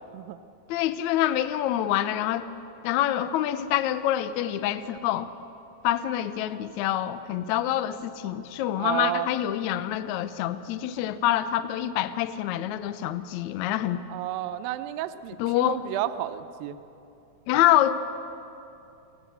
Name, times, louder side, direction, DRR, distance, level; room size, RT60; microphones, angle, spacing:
voice 1, 0.7-2.5 2.8-5.3 5.8-14.0 15.4-15.8 17.5-18.0, left 12 dB, 80° left, 12 dB, 1.7 m, -26 dB
voice 2, 8.8-9.3 14.1-16.8, right 13 dB, 80° right, 10 dB, 2.3 m, -31 dB
24.5 x 17.0 x 7.8 m, 2.7 s
omnidirectional pair, 4.1 m